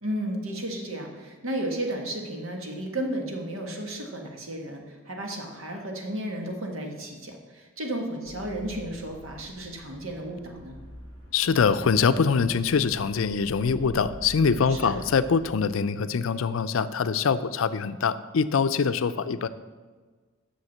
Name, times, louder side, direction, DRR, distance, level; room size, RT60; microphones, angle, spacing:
voice 1, 0.0-10.7 14.7-15.1, right 1 dB, 85° right, 2 dB, 1.6 m, -33 dB
sound 1, 8.3-15.5, left 1 dB, 60° right, 1.5 m, -45 dB
voice 2, 11.3-19.5, left 5 dB, 80° left, 13 dB, 0.5 m, -24 dB
8.0 x 6.4 x 7.2 m, 1.4 s
head